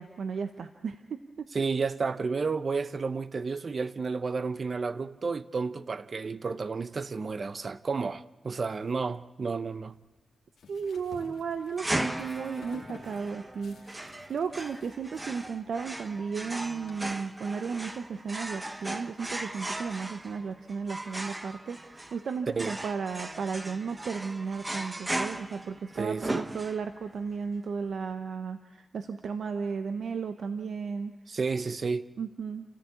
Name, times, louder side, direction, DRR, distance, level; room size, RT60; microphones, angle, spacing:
voice 1, 0.0-1.5 10.7-31.1 32.2-32.6, right 5 dB, 85° right, 0.9 m, -34 dB
voice 2, 1.5-9.9 22.5-22.7 26.0-26.3 31.3-32.1, right 4 dB, 55° right, 0.8 m, -31 dB
sound 1, 9.9-16.9, left 4 dB, 90° left, 2.3 m, -53 dB
sound 2, 11.8-27.1, right 1 dB, 20° right, 1.1 m, -37 dB
29.0 x 14.0 x 8.5 m
cardioid pair, 80°, 0 cm